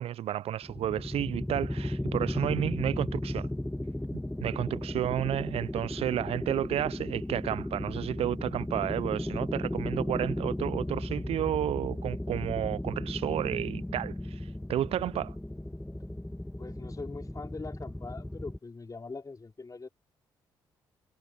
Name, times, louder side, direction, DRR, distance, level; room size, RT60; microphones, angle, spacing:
voice 1, 0.0-3.5 4.4-14.4 14.7-15.3, right 12 dB, 60° right, 0.5 m, -31 dB
sound 1, 0.6-18.6, left 1 dB, 5° left, 2.0 m, -35 dB
voice 2, 16.6-19.9, left 3 dB, 30° left, 4.7 m, -42 dB
hypercardioid pair, 45°, 12 cm